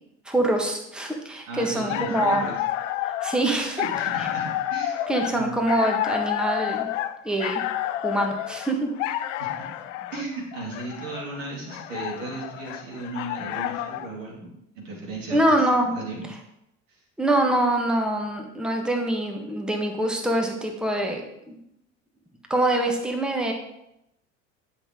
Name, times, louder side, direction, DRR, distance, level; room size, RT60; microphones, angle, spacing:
voice 1, 0.2-2.4 3.0-3.9 4.2-4.3 5.1-6.9 7.2-7.6 8.0-8.9 15.3-15.9 17.2-21.2 21.5-21.6 22.5-23.5, right 1 dB, ahead, 2 dB, 1.4 m, -24 dB
voice 2, 1.5-2.5 3.6-5.6 9.4-9.5 10.1-14.5 14.7-16.3 16.9-17.0, right 2 dB, 75° right, -1 dB, 2.6 m, -36 dB
sound 1, 1.7-14.1, left 12 dB, 75° left, 0.6 m, -30 dB
9.7 x 5.7 x 3.7 m, 0.81 s
hypercardioid pair, 70°, 38 cm